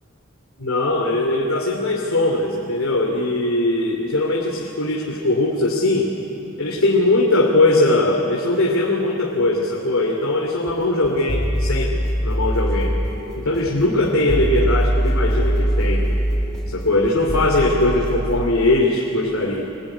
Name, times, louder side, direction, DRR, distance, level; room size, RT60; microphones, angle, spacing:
voice 1, 0.6-6.1 6.6-13.0 13.4-16.1 16.7-19.6, left 2 dB, 85° left, 0 dB, 2.7 m, -20 dB
sound 1, 10.7-18.4, equal, 5° left, 3.9 m, -23 dB
25.0 x 22.0 x 10.0 m, 2.9 s
head